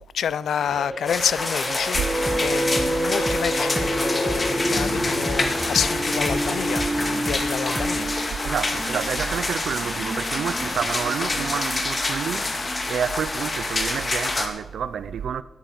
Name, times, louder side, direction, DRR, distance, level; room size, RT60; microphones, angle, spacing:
voice 1, 0.1-2.0 2.3-8.1, left 8 dB, 90° left, 0.5 m, -28 dB
sound 1, 0.6-14.2, right 1 dB, 15° right, 3.5 m, -37 dB
sound 2, 1.1-14.5, left 2 dB, 30° left, 2.0 m, -27 dB
sound 3, 1.9-9.3, right 1 dB, ahead, 1.2 m, -27 dB
voice 2, 8.4-15.4, right 8 dB, 90° right, 0.5 m, -29 dB
12.0 x 10.0 x 6.8 m
wide cardioid pair, 105°, 0 cm